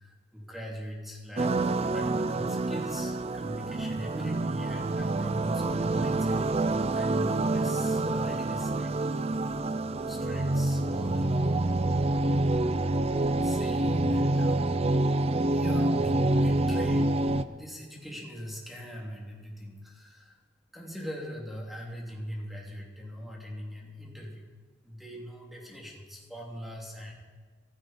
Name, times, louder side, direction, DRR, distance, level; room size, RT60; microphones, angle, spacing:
voice 1, 0.0-6.4 6.9-8.9 10.1-11.8 13.4-14.6 15.4-20.3 20.7-24.5 24.8-27.1, equal, ahead, -2 dB, 2.9 m, -41 dB
sound 1, 1.4-17.4, right 2 dB, 35° right, 0.5 m, -27 dB
16.0 x 15.0 x 4.4 m, 1.5 s
head